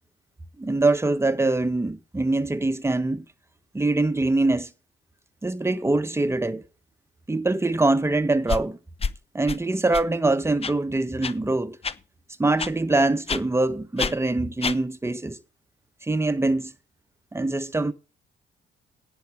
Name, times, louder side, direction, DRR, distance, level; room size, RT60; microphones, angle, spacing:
voice 1, 0.6-3.2 3.7-4.7 5.4-6.6 7.3-8.8 9.3-11.8 12.4-15.4 16.0-16.7 17.3-17.9, right 2 dB, 15° right, 1.2 m, -23 dB
sound 1, 8.5-8.6 9.0-9.1 9.5-9.6 9.9-10.1 10.6-10.7 11.2-11.3 11.8-11.9 12.6-12.7 13.3-13.4 14.0-14.1 14.6-14.8, left 5 dB, 30° left, 0.8 m, -27 dB
10.5 x 8.9 x 4.9 m
cardioid pair, 90°, 20 cm